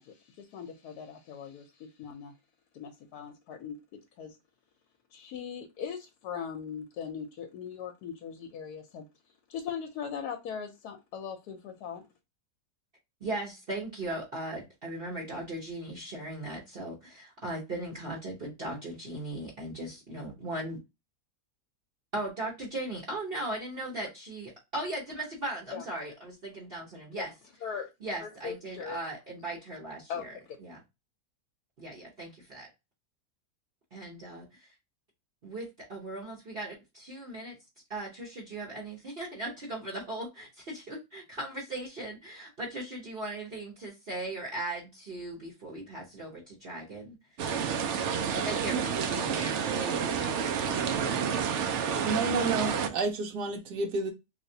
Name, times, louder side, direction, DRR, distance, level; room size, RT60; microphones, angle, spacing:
voice 1, 0.0-2.3 2.7-4.4 5.1-9.0 9.5-12.0 25.7-25.9 27.1-27.3 27.6-27.9 28.2-29.0 30.1-30.6, left 7 dB, 80° left, 1.1 m, -40 dB
voice 2, 13.2-20.8 22.1-27.3 28.0-30.3 30.6-30.8 31.8-32.7 33.9-34.7 35.4-37.6 37.9-47.6 48.3-51.4, right 1 dB, 40° right, 1.0 m, -38 dB
sound 1, 47.4-52.9, right 7 dB, 70° right, 0.7 m, -29 dB
voice 3, 52.0-54.1, right 3 dB, 85° right, 1.2 m, -30 dB
3.2 x 2.9 x 2.6 m
omnidirectional pair, 1.7 m